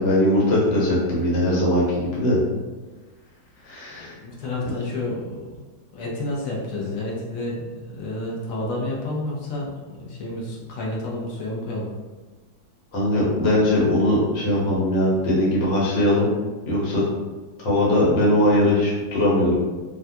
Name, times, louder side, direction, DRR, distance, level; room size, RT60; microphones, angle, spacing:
voice 1, 0.0-2.4 3.6-4.1 12.9-16.3 16.6-17.0 17.6-19.6, left 1 dB, 85° left, -6 dB, 1.7 m, -20 dB
voice 2, 3.9-5.5 5.9-11.9, left 1 dB, 65° left, -3 dB, 0.9 m, -30 dB
3.4 x 2.2 x 2.7 m, 1.3 s
omnidirectional pair, 1.9 m